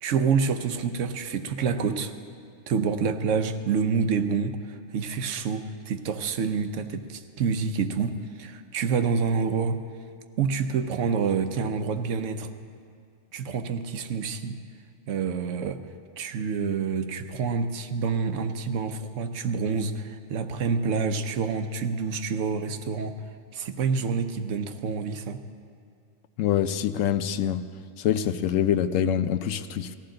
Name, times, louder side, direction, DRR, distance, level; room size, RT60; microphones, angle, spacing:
voice 1, 0.0-2.1 2.7-9.8 10.4-12.5 13.3-14.5 15.1-15.8 16.2-23.1 23.5-25.4, right 5 dB, 70° right, 8 dB, 1.1 m, -27 dB
voice 2, 26.4-27.6 28.0-30.0, left 9 dB, 75° left, 12 dB, 0.9 m, -25 dB
18.5 x 14.5 x 3.8 m, 2.3 s
omnidirectional pair, 1.4 m